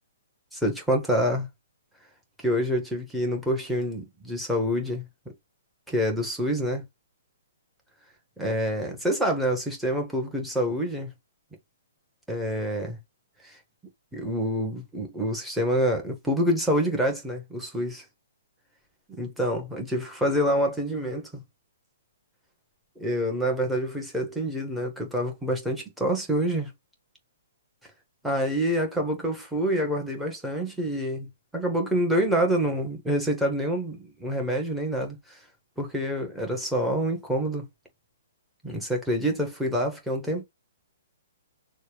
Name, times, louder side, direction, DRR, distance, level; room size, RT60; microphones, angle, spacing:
voice 1, 0.5-1.5 2.4-5.1 5.9-6.8 8.4-11.1 12.3-13.0 13.4-13.6 14.1-18.0 19.2-21.3 23.0-26.7 28.2-35.4 35.8-37.7 38.6-40.4, equal, ahead, 1.5 m, -27 dB
6.3 x 2.4 x 3.1 m
figure-of-eight pair, 120°, 0 cm